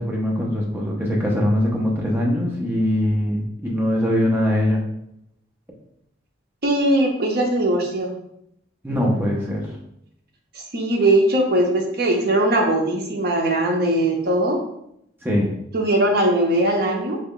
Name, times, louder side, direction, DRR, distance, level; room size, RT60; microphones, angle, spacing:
voice 1, 0.0-4.8 8.8-9.7 15.2-15.5, left 1 dB, 10° right, -2 dB, 0.6 m, -22 dB
voice 2, 6.6-8.1 10.7-14.6 15.7-17.2, right 1 dB, 50° right, 1 dB, 0.6 m, -20 dB
3.1 x 2.3 x 3.7 m, 0.76 s
head